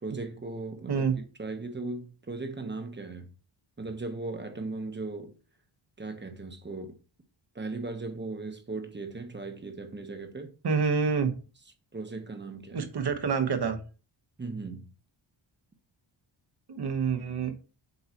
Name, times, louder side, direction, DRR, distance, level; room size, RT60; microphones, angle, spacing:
voice 1, 0.0-3.3 3.8-5.3 6.0-7.0 7.5-10.5 11.9-12.9 14.4-14.9, right 3 dB, 20° right, 1.0 m, -37 dB
voice 2, 10.6-11.3 12.7-13.8 16.7-17.5, right 5 dB, 50° right, 1.2 m, -27 dB
8.1 x 5.4 x 3.0 m
wide cardioid pair, 145°, 49 cm